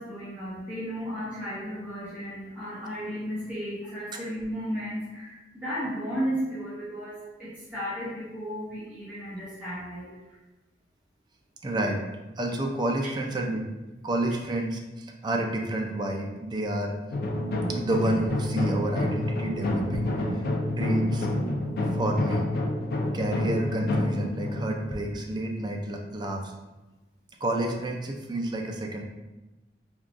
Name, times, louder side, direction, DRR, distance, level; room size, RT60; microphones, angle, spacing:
voice 1, 0.0-10.2, equal, 10° right, -12 dB, 0.8 m, -34 dB
voice 2, 11.6-12.1 12.4-13.7 14.0-17.0 17.7-21.3 21.8-22.5 23.1-26.5 27.4-29.0, right 1 dB, 25° right, 2 dB, 0.3 m, -30 dB
sound 1, 17.1-25.9, left 1 dB, 60° left, 0.4 m, -28 dB
3.5 x 2.3 x 2.4 m, 1.1 s
head